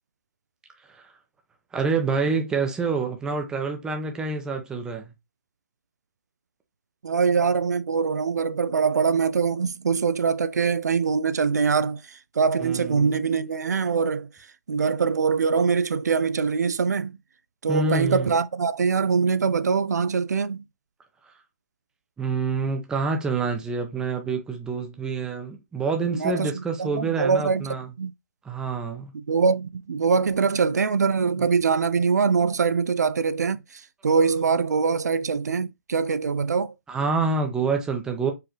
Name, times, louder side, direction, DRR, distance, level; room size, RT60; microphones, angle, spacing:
voice 1, 0.8-1.1 1.7-5.1 12.6-13.2 17.7-18.3 22.2-27.9 28.4-29.1 31.4-31.5 36.9-38.3, right 4 dB, 10° right, 0.8 m, -27 dB
voice 2, 7.0-14.3 14.7-17.2 17.6-20.6 26.1-26.5 26.8-27.7 28.0-28.1 29.1-36.7, right 5 dB, 85° right, 0.4 m, -23 dB
4.7 x 3.1 x 3.0 m
hypercardioid pair, 145°, 9 cm